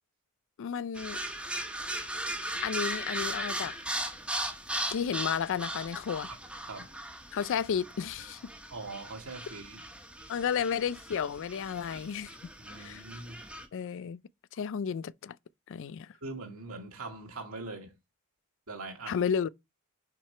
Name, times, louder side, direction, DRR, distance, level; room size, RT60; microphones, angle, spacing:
voice 1, 0.6-1.2 2.6-3.8 4.9-6.3 7.3-8.4 10.3-12.4 12.8-13.0 13.7-14.2 14.6-15.4 15.7-16.1 19.1-19.5, left 7 dB, 60° left, 0.4 m, -32 dB
sound 1, 0.9-13.7, right 1 dB, 5° right, 1.1 m, -38 dB
voice 2, 8.7-9.8 12.6-13.4 16.2-18.0 18.7-19.2, right 3 dB, 75° right, 2.1 m, -42 dB
5.9 x 4.9 x 4.3 m
head